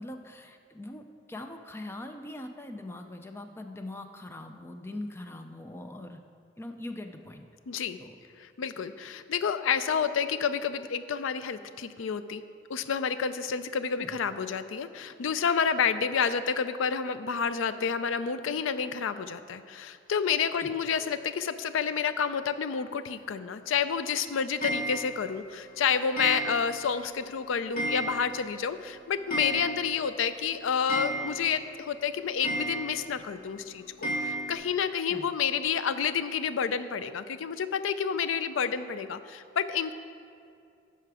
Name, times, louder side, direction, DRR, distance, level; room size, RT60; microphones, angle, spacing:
voice 1, 0.0-6.2 6.6-7.5 8.0-8.2 14.0-14.2 20.6-20.7 35.1-35.3, left 1 dB, 10° left, 6 dB, 0.4 m, -42 dB
voice 2, 7.7-8.0 8.4-12.4 12.7-39.9, left 6 dB, 80° left, 12 dB, 0.4 m, -29 dB
Clock, 24.6-25.3 26.2-26.9 27.2-27.3 27.8-28.5 28.8-28.9 29.1-30.1 30.4-30.5 30.9-31.7 32.4-33.2 34.0-34.5, right 1 dB, 45° left, 1.4 m, -33 dB
10.5 x 5.7 x 4.8 m, 2.4 s
head